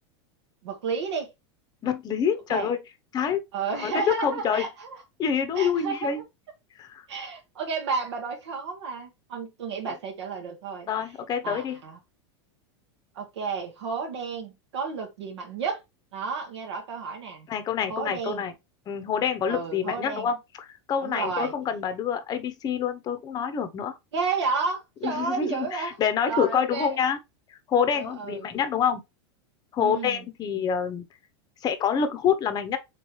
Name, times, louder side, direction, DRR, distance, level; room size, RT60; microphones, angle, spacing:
voice 1, 0.6-1.3 2.5-2.7 3.5-5.0 5.5-6.1 7.1-10.9 11.4-12.0 13.1-15.8 16.1-17.5 17.9-18.4 19.5-20.3 21.0-21.5 24.1-26.0 26.3-27.0 27.9-28.5 29.8-30.2, right 5 dB, 85° right, 1.2 m, -31 dB
voice 2, 1.8-2.8 3.1-3.4 3.7-4.6 5.2-6.2 6.8-7.0 9.9-10.0 10.9-11.8 17.5-18.5 18.9-23.9 25.0-27.2 27.5-29.0 29.7-31.0 31.6-32.8, left 7 dB, 30° left, 0.7 m, -27 dB
3.6 x 3.2 x 3.0 m
supercardioid pair, 125°, 14 cm